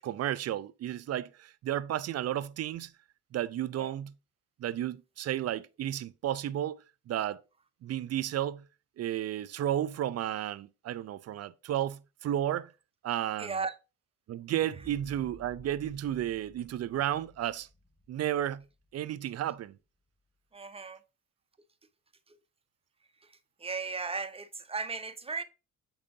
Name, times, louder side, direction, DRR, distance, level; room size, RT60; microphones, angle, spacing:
voice 1, 0.0-2.9 3.3-4.1 4.6-7.4 7.8-8.6 9.0-12.7 13.0-13.6 14.3-17.7 18.1-18.6 18.9-19.8, right 12 dB, 55° right, 0.5 m, -33 dB
voice 2, 13.4-13.7 20.5-21.0 22.3-22.4 23.6-25.4, right 4 dB, 20° right, 0.7 m, -36 dB
sound 1, 14.5-18.8, equal, 5° right, 2.0 m, -54 dB
7.5 x 4.8 x 2.7 m
cardioid pair, 90°, 30 cm